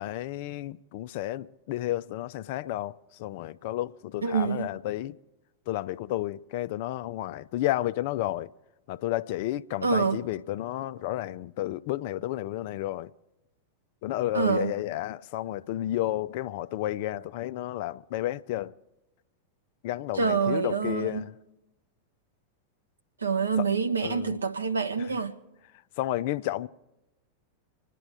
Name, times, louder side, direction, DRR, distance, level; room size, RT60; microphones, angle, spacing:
voice 1, 0.0-5.2 5.7-8.5 8.9-13.1 14.0-18.7 19.8-21.3 23.6-23.7 24.0-24.5 26.0-26.7, left 14 dB, 50° left, 0.5 m, -32 dB
voice 2, 4.2-4.7 9.8-10.2 14.3-14.7 20.1-21.2 23.2-25.4, right 5 dB, 75° right, 1.2 m, -26 dB
26.5 x 10.0 x 4.8 m
figure-of-eight pair, 90°, 0 cm